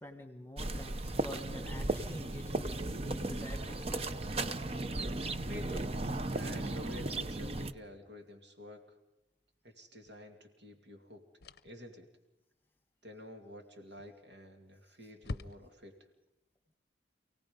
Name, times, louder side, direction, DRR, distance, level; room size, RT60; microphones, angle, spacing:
voice 1, 0.0-2.7 3.0-4.3, left 1 dB, 10° left, 6 dB, 1.6 m, -47 dB
sound 1, 0.6-7.7, right 2 dB, 35° right, 0.7 m, -36 dB
voice 2, 5.4-6.0 6.3-9.0 9.6-11.2 11.6-12.1 13.0-15.9, left 1 dB, 80° right, 4 dB, 2.5 m, -50 dB
sound 2, 10.1-10.2 11.4-11.9 14.0-14.4 14.7-14.8 15.2-16.0, left 2 dB, 60° left, 0.6 m, -44 dB
28.0 x 18.0 x 5.2 m, 0.96 s
head